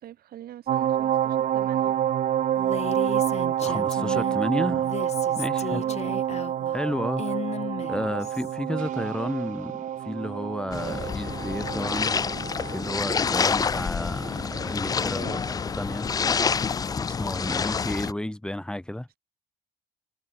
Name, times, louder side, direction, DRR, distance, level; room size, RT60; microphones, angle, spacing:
voice 1, 0.0-2.0 5.7-6.2 7.9-8.2 10.8-11.0 15.2-15.4, right 12 dB, 65° right, 5.0 m, -43 dB
sound 1, 0.7-16.2 16.6-16.7, right 10 dB, 45° right, 0.7 m, -28 dB
Female speech woman speaking, 2.6-4.4 4.8-8.5, left 8 dB, 40° left, 0.8 m, -36 dB
voice 2, 3.6-4.9 5.3-5.8 6.7-7.2 7.9-12.2 12.6-15.4 15.8-16.1 17.0-19.1, left 1 dB, 5° left, 2.9 m, -32 dB
sound 2, 10.7-18.1, left 6 dB, 20° left, 0.4 m, -27 dB
cardioid pair, 110°, 17 cm